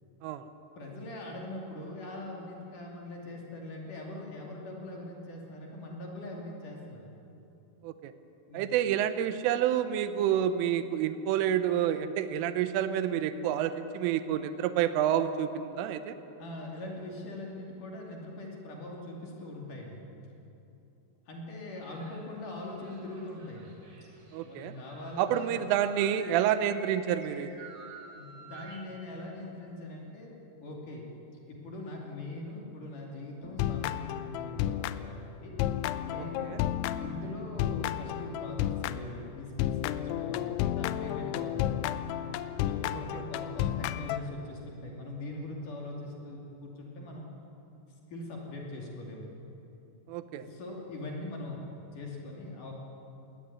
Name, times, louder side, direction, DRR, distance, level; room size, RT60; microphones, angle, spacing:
voice 1, 0.8-7.1 8.5-8.6 16.4-20.0 21.3-23.8 24.4-25.6 28.1-30.3 30.6-31.1 31.5-35.6 36.0-36.5 37.0-41.9 42.7-47.3 48.1-49.2 50.3-51.6 51.9-52.7, left 2 dB, 45° left, -1 dB, 3.8 m, -42 dB
voice 2, 8.5-16.2 24.3-24.7 25.2-27.5 36.2-36.6 43.1-43.2 50.1-50.5, right 10 dB, 80° right, 11 dB, 3.5 m, -29 dB
sound 1, 21.7-29.0, right 4 dB, 40° right, 3.2 m, -51 dB
sound 2, 33.4-35.3 35.6-39.2 39.6-44.2, left 11 dB, 80° left, 2.8 m, -32 dB
21.0 x 18.5 x 9.8 m, 2.9 s
omnidirectional pair, 5.7 m